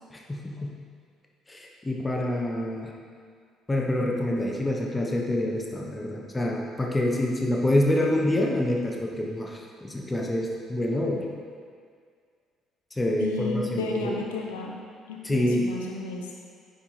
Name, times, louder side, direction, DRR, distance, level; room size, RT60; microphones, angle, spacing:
voice 1, 0.1-0.8 1.5-2.9 3.7-11.3 12.9-14.2 15.2-15.7, left 1 dB, 20° left, -1 dB, 1.1 m, -27 dB
voice 2, 13.2-14.8 15.1-16.4, left 3 dB, 75° left, 0 dB, 0.9 m, -32 dB
9.6 x 6.0 x 3.4 m, 2.1 s
figure-of-eight pair, 50°, 0 cm